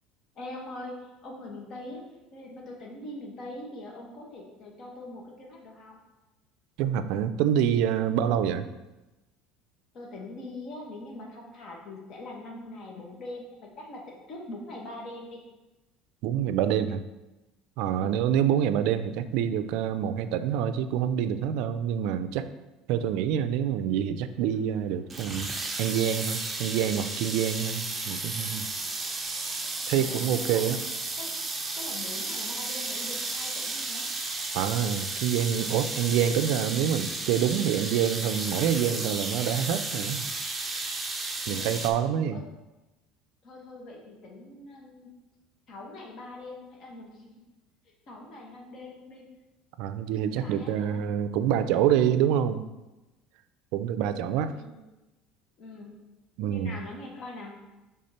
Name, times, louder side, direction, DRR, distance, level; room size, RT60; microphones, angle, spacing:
voice 1, 0.3-2.0 2.3-6.0 9.9-14.0 14.3-15.4 18.0-18.2 29.9-30.6 31.2-31.4 31.8-34.1 41.4-41.7 42.3-42.4 43.4-45.1 45.7-47.3 48.1-49.2 50.4-51.0 51.5-52.3 54.5-54.8 55.6-55.9 56.5-57.6, left 2 dB, 45° left, -1 dB, 1.3 m, -42 dB
voice 2, 6.8-8.7 16.2-17.0 17.8-22.5 22.9-25.5 25.8-28.7 29.9-30.8 34.5-40.2 41.5-42.4 49.8-52.6 53.7-54.6 56.4-56.8, right 9 dB, 70° right, 11 dB, 0.4 m, -26 dB
sound 1, 25.1-41.9, right 3 dB, 15° right, 0.7 m, -33 dB
6.4 x 3.6 x 4.2 m, 1.1 s
cardioid pair, 140°, 0 cm